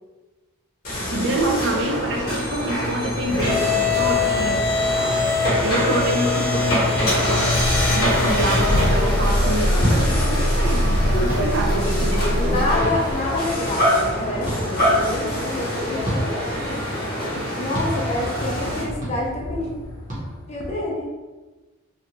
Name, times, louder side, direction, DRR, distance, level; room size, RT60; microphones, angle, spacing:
sound 1, 0.8-18.8, left 1 dB, 50° left, 0.9 m, -22 dB
voice 1, 1.1-4.7 5.6-6.9 7.2-12.7, right 1 dB, 55° right, 1 dB, 0.4 m, -27 dB
sound 2, 2.9-20.7, left 1 dB, 80° left, 0.5 m, -31 dB
sound 3, 8.5-8.7 9.8-10.0 11.3-11.5 12.8-13.0 14.4-14.6 16.0-16.2 17.7-17.9 19.0-19.1 20.1-20.2, right 1 dB, 35° right, 0.8 m, -25 dB
voice 2, 12.3-16.8 17.4-19.7 20.5-21.1, left 2 dB, 30° left, -2 dB, 0.4 m, -28 dB
2.7 x 2.2 x 2.9 m, 1.2 s
head